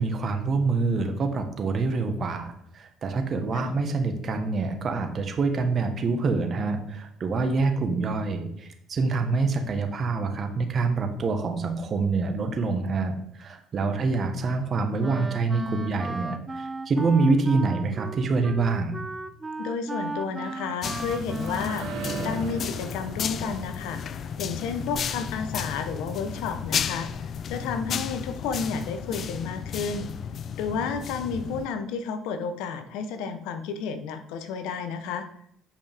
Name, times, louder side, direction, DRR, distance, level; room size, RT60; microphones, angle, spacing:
voice 1, 0.0-19.0, right 3 dB, 50° right, 6 dB, 1.3 m, -26 dB
voice 2, 13.8-14.1 19.6-24.0 24.4-30.1 30.6-35.2, left 5 dB, 80° left, 9 dB, 0.8 m, -31 dB
Wind instrument woodwind instrument, 15.0-22.5, right 2 dB, 25° right, 0.7 m, -35 dB
sound 1, 20.7-26.4, right 6 dB, 85° right, 1.1 m, -42 dB
sound 2, 20.8-31.7, left 7 dB, 55° left, 0.4 m, -33 dB
9.3 x 5.1 x 3.6 m, 0.70 s
supercardioid pair, 70°, 0 cm